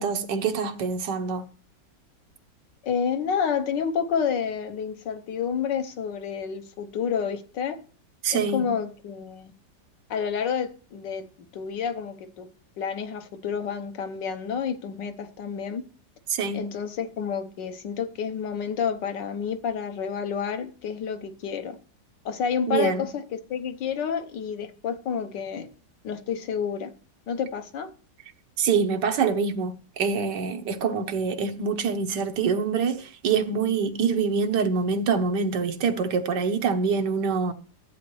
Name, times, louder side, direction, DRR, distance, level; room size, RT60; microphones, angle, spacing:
voice 1, 0.0-1.5 8.2-8.7 16.3-16.7 22.7-23.0 28.6-37.5, right 5 dB, 80° right, 1.6 m, -25 dB
voice 2, 2.8-7.8 8.3-9.5 10.1-12.5 12.8-15.8 16.5-21.8 22.2-25.7 26.0-26.9 27.3-27.9, left 7 dB, 90° left, 1.6 m, -29 dB
13.5 x 8.4 x 3.1 m
omnidirectional pair, 1.9 m